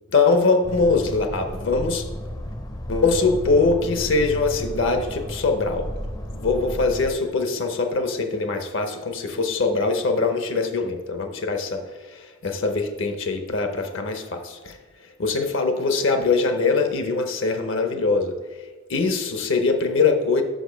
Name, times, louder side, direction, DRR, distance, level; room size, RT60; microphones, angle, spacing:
voice 1, 0.1-2.0 2.9-5.9 6.3-14.8 15.2-20.4, left 4 dB, 60° left, 6 dB, 0.8 m, -22 dB
sound 1, 0.6-7.1, equal, 20° left, 0.5 m, -33 dB
6.1 x 5.1 x 5.0 m, 1.4 s
head